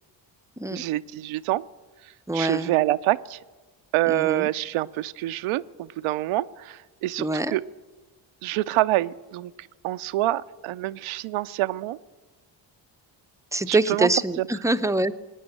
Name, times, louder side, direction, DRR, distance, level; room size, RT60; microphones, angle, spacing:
voice 1, 0.7-1.6 2.3-3.4 3.9-7.6 8.4-12.0 13.7-14.1 14.4-14.5, right 16 dB, 85° right, 13 dB, 0.5 m, -26 dB
voice 2, 2.3-2.7 4.1-4.5 7.2-7.6 13.5-15.2, right 2 dB, 5° right, 12 dB, 0.5 m, -25 dB
18.0 x 9.5 x 7.8 m, 1.3 s
cardioid pair, 80°, 48 cm